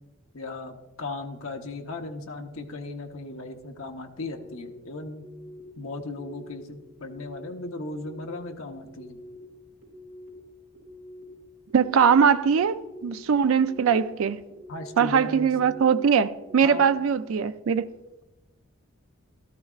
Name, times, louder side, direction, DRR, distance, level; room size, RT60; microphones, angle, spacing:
voice 1, 0.3-5.3 5.8-9.2 14.7-15.5 16.6-16.9, left 2 dB, 75° left, 1.0 m, -37 dB
sound 1, 4.2-4.7 5.1-5.6 6.1-6.5 7.0-7.5 7.9-8.4 8.9-9.4 9.8-10.3 10.7-11.2 11.7-12.2 12.6-13.1 13.6-14.0 14.5-15.0 15.4-15.9 16.4-16.9, left 1 dB, 50° right, 4.4 m, -46 dB
voice 2, 11.7-14.4 15.0-17.9, right 7 dB, 80° right, 0.4 m, -21 dB
13.5 x 13.0 x 2.4 m
head